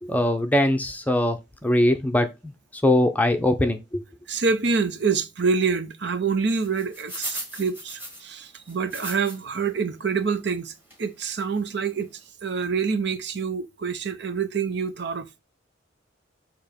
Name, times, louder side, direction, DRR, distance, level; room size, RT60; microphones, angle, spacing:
voice 1, 0.0-2.5 2.8-4.0, left 1 dB, 10° left, 0.6 m, -22 dB
voice 2, 4.3-10.7 11.0-12.1 12.4-15.4, right 5 dB, 60° right, 0.7 m, -26 dB
sound 1, 6.6-9.6 10.1-10.2 10.9-11.1 11.6-11.7 11.8-12.0, right 1 dB, 10° right, 1.6 m, -37 dB
6.9 x 3.0 x 5.1 m
head